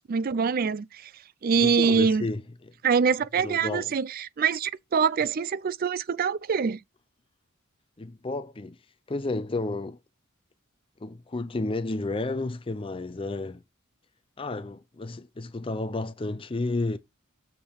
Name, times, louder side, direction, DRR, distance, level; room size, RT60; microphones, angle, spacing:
voice 1, 0.1-1.1 1.4-2.3 2.8-6.8, right 6 dB, 40° right, 0.4 m, -24 dB
voice 2, 1.6-2.7 3.4-3.9 8.0-8.8 9.1-10.0 11.0-13.6 14.4-17.0, left 2 dB, 25° left, 0.5 m, -32 dB
6.7 x 5.5 x 4.3 m
head